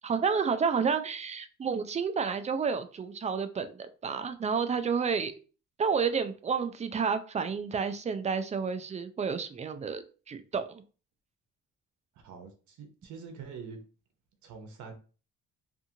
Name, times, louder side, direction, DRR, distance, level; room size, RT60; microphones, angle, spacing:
voice 1, 0.0-5.3 5.8-10.8, right 6 dB, 25° right, 10 dB, 0.3 m, -30 dB
voice 2, 12.2-13.8 14.4-14.9, right 5 dB, 70° right, 5 dB, 0.8 m, -45 dB
2.6 x 2.4 x 2.7 m, 0.37 s
cardioid pair, 90°, 30 cm